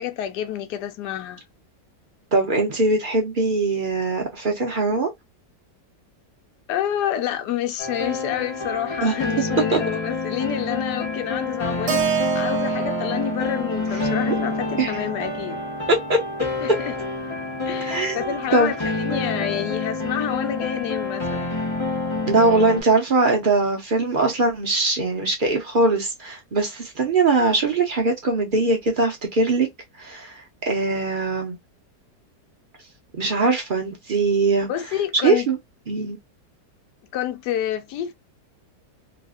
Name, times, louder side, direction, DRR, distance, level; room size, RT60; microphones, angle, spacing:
voice 1, 0.0-1.4 6.7-15.6 16.6-17.0 17.7-21.5 34.7-35.5 37.1-38.1, left 10 dB, 75° left, 1.2 m, -28 dB
voice 2, 2.3-5.1 9.0-9.1 9.7-9.8 14.3-14.4 14.8-14.9 15.9-16.2 17.8-18.7 22.3-29.7 30.0-30.3 30.7-31.6 33.2-34.7 35.2-35.6 35.9-36.2, right 3 dB, 45° right, 0.7 m, -21 dB
sound 1, 7.8-22.8, left 3 dB, 30° left, 0.5 m, -28 dB
Keyboard (musical), 11.9-16.1, right 9 dB, 75° right, 1.2 m, -29 dB
3.2 x 2.5 x 2.3 m
omnidirectional pair, 1.8 m